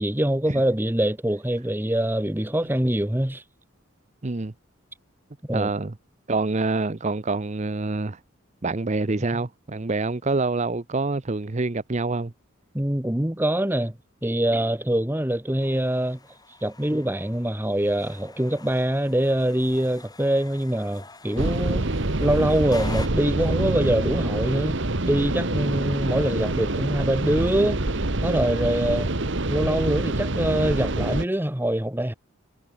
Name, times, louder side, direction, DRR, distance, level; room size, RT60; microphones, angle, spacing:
voice 1, 0.0-3.4 5.4-5.7 9.3-9.4 12.7-14.0 14.2-16.2 16.6-21.9 22.2-24.8 25.1-27.8 28.2-29.1 29.5-32.1, right 1 dB, 10° right, 1.2 m, -24 dB
voice 2, 4.2-4.5 5.5-5.9 6.3-8.2 8.6-12.3, right 3 dB, 35° right, 0.7 m, -26 dB
sound 1, 15.6-23.1, left 3 dB, 20° left, 7.0 m, -45 dB
sound 2, 21.4-31.3, right 2 dB, 60° right, 1.6 m, -26 dB
head